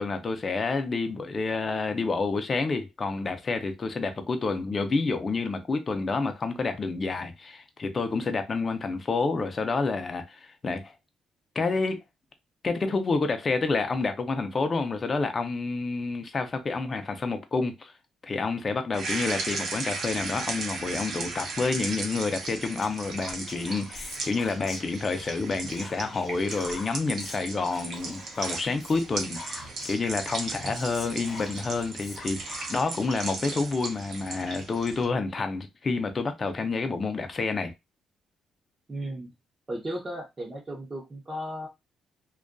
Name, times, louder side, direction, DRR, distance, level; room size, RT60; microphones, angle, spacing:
voice 1, 0.0-10.9 11.6-12.0 12.6-17.9 18.2-37.7, left 3 dB, 35° left, 0.5 m, -29 dB
sound 1, 18.9-35.0, right 3 dB, 65° right, 0.7 m, -36 dB
Whispering, 22.8-25.3 25.7-30.1 30.5-30.6 30.7-33.0, left 2 dB, 55° left, 0.9 m, -44 dB
voice 2, 38.9-39.3 39.7-41.7, right 1 dB, 25° right, 0.7 m, -35 dB
2.4 x 2.3 x 2.2 m
cardioid pair, 90°, 0 cm